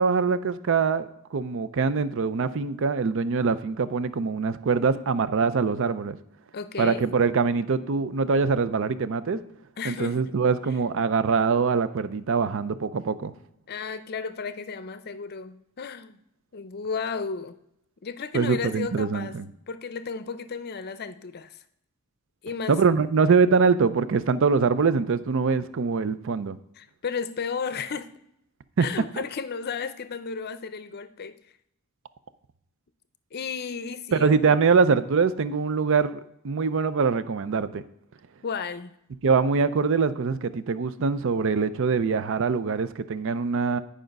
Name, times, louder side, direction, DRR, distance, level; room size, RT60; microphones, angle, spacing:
voice 1, 0.0-6.2 6.8-9.4 9.8-13.3 18.3-19.5 22.7-26.6 28.8-28.9 34.1-36.2 36.4-37.8 39.2-43.8, right 5 dB, 65° right, 14 dB, 0.5 m, -23 dB
voice 2, 6.5-7.1 9.8-10.2 13.7-16.2 16.5-17.6 18.0-19.4 19.7-21.6 22.4-22.8 26.8-28.2 28.8-31.3 33.3-34.4 38.4-38.9, left 5 dB, 50° left, 13 dB, 0.5 m, -33 dB
10.0 x 5.0 x 5.2 m, 0.76 s
head